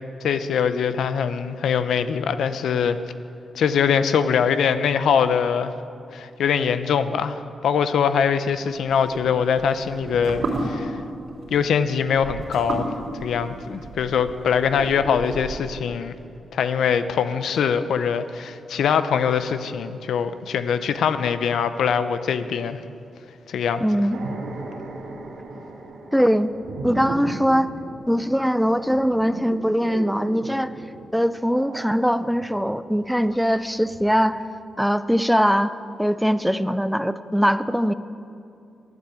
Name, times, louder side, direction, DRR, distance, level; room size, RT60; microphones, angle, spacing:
voice 1, 0.2-3.0 3.5-5.7 6.1-11.0 11.5-12.9 13.2-16.1 16.5-22.8 23.5-23.8, left 7 dB, 85° left, 11 dB, 0.6 m, -22 dB
sound 1, 8.8-15.8, right 2 dB, 70° right, 3.5 m, -33 dB
voice 2, 23.8-24.2 26.1-26.5 26.8-27.7 28.1-30.7 31.1-34.4 34.8-37.9, equal, ahead, 13 dB, 0.4 m, -21 dB
sound 2, 24.1-33.6 33.8-34.0, right 2 dB, 90° right, 2.1 m, -37 dB
12.0 x 8.5 x 8.3 m, 2.6 s
cardioid pair, 115°, 0 cm